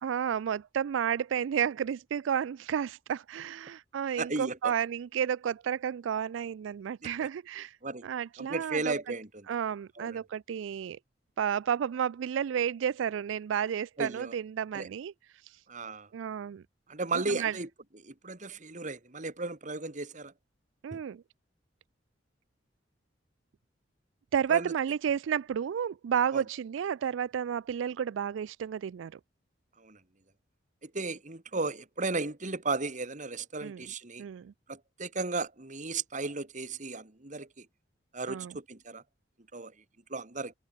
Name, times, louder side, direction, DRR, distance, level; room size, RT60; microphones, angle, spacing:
voice 1, 0.0-7.8 8.0-8.9 9.5-11.0 11.4-15.1 15.4-15.6 16.1-16.6 17.3-17.5 20.8-21.2 24.3-29.2 33.6-33.8 34.2-34.5 38.3-38.5, right 8 dB, 80° right, 0.3 m, -31 dB
voice 2, 4.2-4.7 7.2-7.3 7.8-8.1 8.4-9.5 10.0-10.2 14.0-14.3 14.7-14.9 15.7-16.1 16.9-17.7 18.0-20.3 20.9-21.0 24.5-24.7 26.3-26.4 29.8-30.0 30.8-34.2 34.7-37.7 38.1-39.0 39.5-39.7 40.1-40.5, right 3 dB, 40° right, 2.0 m, -35 dB
head